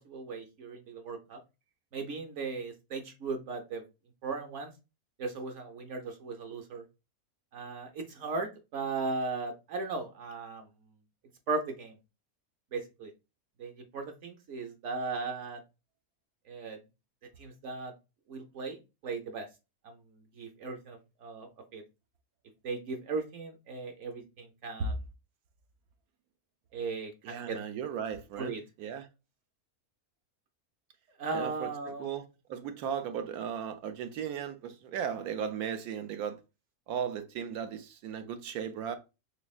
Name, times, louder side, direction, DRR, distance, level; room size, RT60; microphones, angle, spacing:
voice 1, 0.1-1.4 1.9-3.8 4.2-4.7 5.2-6.8 7.5-10.7 11.5-12.0 12.7-13.1 13.6-15.6 16.5-16.8 17.4-17.9 18.3-18.8 19.0-19.5 19.8-19.9 20.4-21.8 22.6-24.9 26.7-27.6 28.4-28.6 31.2-32.1, right 4 dB, 60° right, 0.9 m, -37 dB
voice 2, 27.2-29.1 31.3-32.2 32.5-36.4 36.9-39.0, right 7 dB, 85° right, 1.1 m, -36 dB
4.0 x 3.4 x 2.3 m
omnidirectional pair, 1.5 m